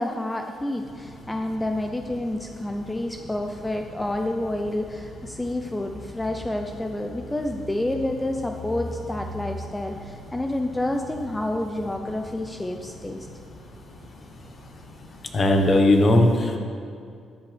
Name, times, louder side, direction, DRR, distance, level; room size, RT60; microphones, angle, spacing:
voice 1, 0.0-13.3, left 1 dB, 15° left, 4 dB, 0.6 m, -29 dB
sound 1, 0.8-15.6, left 1 dB, 65° left, 2.0 m, -42 dB
voice 2, 15.3-16.6, left 1 dB, 40° left, 4 dB, 1.3 m, -18 dB
13.0 x 9.0 x 3.4 m, 2.4 s
cardioid pair, 90°, 0 cm